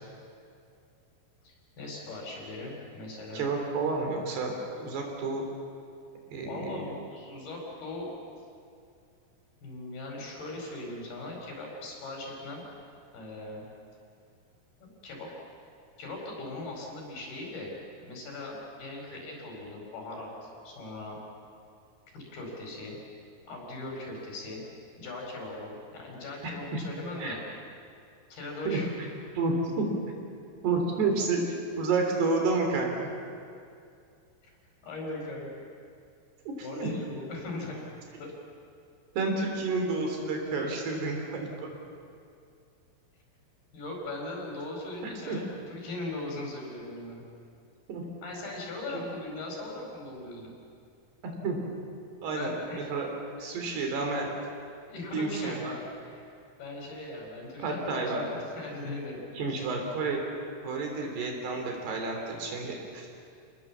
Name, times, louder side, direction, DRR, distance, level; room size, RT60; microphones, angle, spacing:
voice 1, 1.4-3.5 6.4-8.1 9.6-12.6 13.1-13.6 14.8-15.3 16.0-17.7 18.0-21.2 22.1-23.0 23.5-24.6 25.0-27.4 28.3-28.9 34.4-34.5 34.8-35.6 36.6-37.8 38.2-38.3 43.7-45.4 45.7-47.2 48.2-50.5 52.3-52.9 54.9-55.6 56.0-56.3 56.6-59.2 59.5-59.6, left 2 dB, 65° left, -1 dB, 6.9 m, -39 dB
voice 2, 3.3-4.5 4.8-5.4 6.3-6.9 19.1-19.2 26.4-26.8 27.2-27.4 28.7-28.8 29.4-29.9 30.6-31.4 31.8-33.1 36.6-36.9 39.2-41.7 45.0-45.4 47.9-48.0 48.9-49.0 51.2-51.6 52.2-53.1 53.4-54.3 55.1-55.7 57.6-58.2 59.4-60.2 60.6-63.1, right 3 dB, 75° right, 2 dB, 5.5 m, -30 dB
28.0 x 20.0 x 7.4 m, 2.4 s
omnidirectional pair, 4.7 m